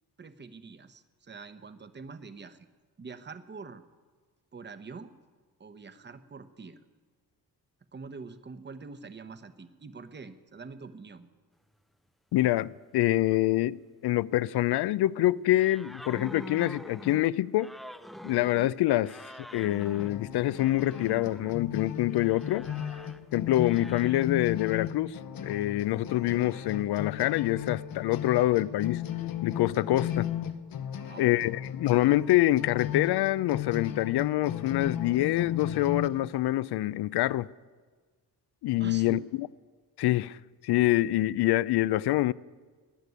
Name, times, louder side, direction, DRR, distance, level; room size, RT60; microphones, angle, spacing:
voice 1, 0.2-2.7 3.0-3.8 4.5-5.1 5.6-6.8 7.9-11.3 31.0-31.3 38.8-39.2, right 4 dB, 25° right, 0.9 m, -45 dB
voice 2, 12.3-17.7 18.2-22.7 23.3-29.0 29.4-30.3 31.2-37.5 38.6-39.5 40.0-40.4 40.6-42.3, left 15 dB, 80° left, 0.5 m, -26 dB
sound 1, 15.5-21.6 22.1-23.2 23.6-24.2, equal, ahead, 0.5 m, -45 dB
sound 2, 20.0-36.1, left 10 dB, 60° left, 1.0 m, -36 dB
19.0 x 6.7 x 9.4 m
cardioid pair, 105°, 39 cm